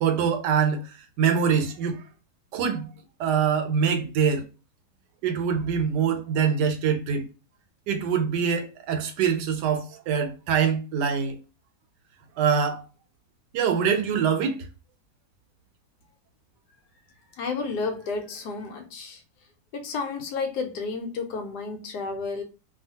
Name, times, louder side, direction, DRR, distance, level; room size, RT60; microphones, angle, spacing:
voice 1, 0.0-0.8 1.2-2.0 2.5-2.9 3.2-4.5 5.2-7.2 7.9-11.4 12.4-12.8 13.5-14.6, right 7 dB, 80° right, 1.2 m, -24 dB
voice 2, 17.3-19.2 19.7-22.4, left 4 dB, 75° left, 1.1 m, -31 dB
2.6 x 2.4 x 2.7 m
omnidirectional pair, 1.8 m